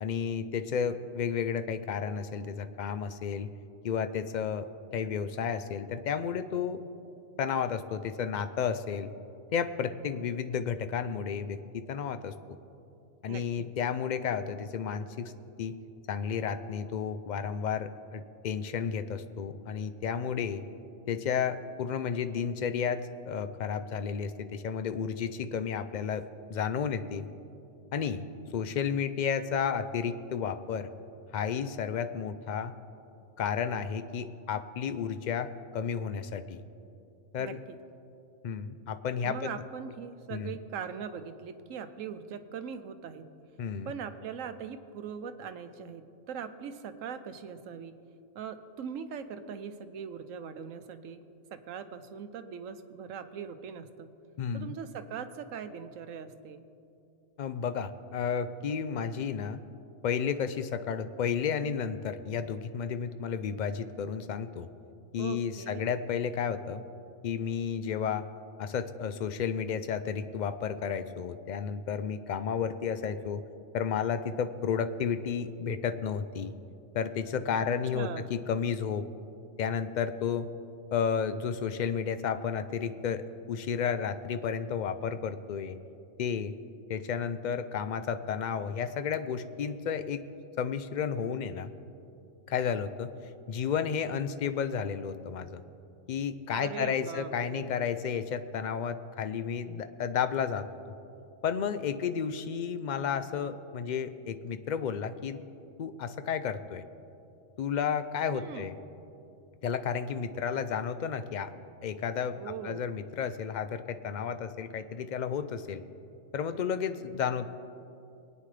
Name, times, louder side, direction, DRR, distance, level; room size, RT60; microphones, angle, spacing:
voice 1, 0.0-3.5 3.8-4.7 4.9-6.8 7.4-9.1 9.5-12.3 13.2-15.3 15.6-15.7 16.1-20.6 21.1-27.3 27.9-28.2 28.5-30.9 31.3-32.7 33.4-36.6 37.3-37.6 38.4-39.6 40.3-40.5 43.6-43.9 54.4-54.7 57.4-59.6 60.0-64.7 65.1-66.8 67.2-68.3 68.6-73.4 73.7-76.5 76.9-79.1 79.6-80.5 80.9-85.8 86.2-86.5 86.9-90.2 90.6-91.7 92.5-93.1 93.5-95.6 96.1-100.7 101.4-105.4 105.8-106.8 107.6-108.8 109.6-111.5 111.8-115.8 116.3-117.5, left 7 dB, 60° left, 11 dB, 0.4 m, -32 dB
voice 2, 13.3-13.7 37.4-37.8 39.2-43.3 43.8-48.0 48.3-51.2 51.5-54.1 54.5-56.6 65.2-65.9 77.9-78.3 96.5-97.7 108.3-108.7 112.4-112.8, right 7 dB, 85° right, 10 dB, 1.1 m, -41 dB
23.5 x 9.3 x 3.3 m, 2.7 s
omnidirectional pair, 1.3 m